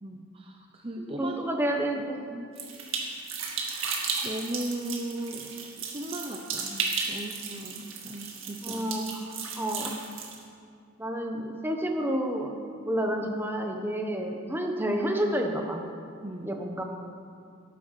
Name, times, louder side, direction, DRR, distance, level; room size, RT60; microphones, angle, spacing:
voice 1, 0.0-3.1 3.6-8.9 9.3-10.0 16.2-16.5, right 1 dB, 25° right, 2 dB, 0.7 m, -39 dB
voice 2, 1.0-2.2 8.6-9.3 9.5-10.0 11.0-12.5 12.8-15.9 16.4-16.8, right 1 dB, 10° right, 2 dB, 1.1 m, -30 dB
sound 1, 2.6-10.4, right 5 dB, 70° right, 2.0 m, -34 dB
13.5 x 11.0 x 5.9 m, 2.3 s
head